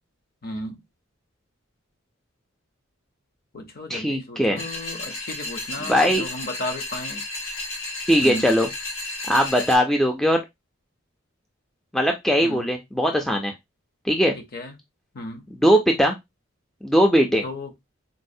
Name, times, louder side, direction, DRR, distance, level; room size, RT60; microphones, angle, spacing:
voice 1, 0.4-0.8 3.5-7.2 8.2-8.5 12.4-12.6 14.4-14.8 15.1-15.5 17.4-17.7, left 1 dB, 45° left, 0.6 m, -34 dB
voice 2, 3.9-4.7 5.8-6.2 8.1-8.7 9.3-10.4 11.9-13.5 14.1-14.3 15.6-16.2 16.8-17.4, equal, ahead, 0.3 m, -20 dB
sound 1, 4.6-9.8, left 2 dB, 85° left, 1.1 m, -33 dB
4.0 x 2.0 x 2.6 m
head